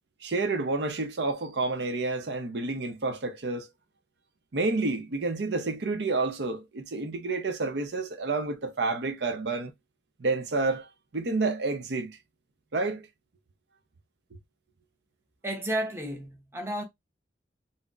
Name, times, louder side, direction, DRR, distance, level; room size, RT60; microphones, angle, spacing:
voice 1, 0.2-3.7 4.5-9.7 10.2-10.9 11.1-12.2 12.7-13.1, right 3 dB, 80° right, 0.6 m, -29 dB
voice 2, 15.4-16.8, right 1 dB, 15° right, 0.8 m, -32 dB
4.0 x 2.0 x 2.3 m
head